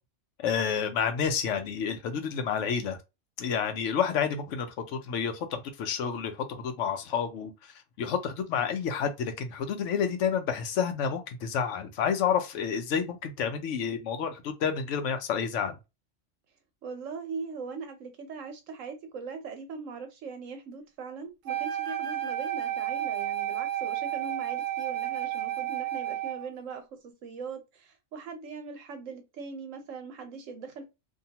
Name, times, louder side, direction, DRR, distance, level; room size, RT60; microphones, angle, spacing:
voice 1, 0.4-3.0 3.4-7.7 8.0-15.8, left 7 dB, 75° left, 0.9 m, -29 dB
voice 2, 16.8-30.8, right 5 dB, 90° right, 1.1 m, -40 dB
Wind instrument woodwind instrument, 21.5-26.5, right 12 dB, 60° right, 0.5 m, -32 dB
2.7 x 2.3 x 2.8 m
omnidirectional pair, 1.3 m